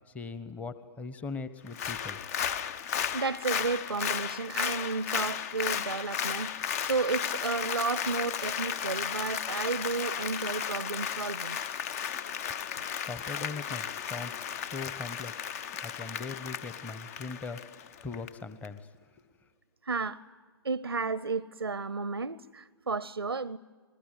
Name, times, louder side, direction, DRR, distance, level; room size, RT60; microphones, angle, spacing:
voice 1, 0.1-2.2 13.0-15.5 15.7-17.6 18.0-18.9, left 4 dB, 10° left, 14 dB, 1.1 m, -40 dB
Applause, 1.7-18.3 18.6-18.7, left 8 dB, 40° left, 0.7 m, -34 dB
voice 2, 3.1-11.6 19.8-20.2 20.6-23.6, right 4 dB, 80° right, 20 dB, 0.7 m, -32 dB
28.0 x 20.5 x 9.4 m, 1.5 s
figure-of-eight pair, 120°, 13 cm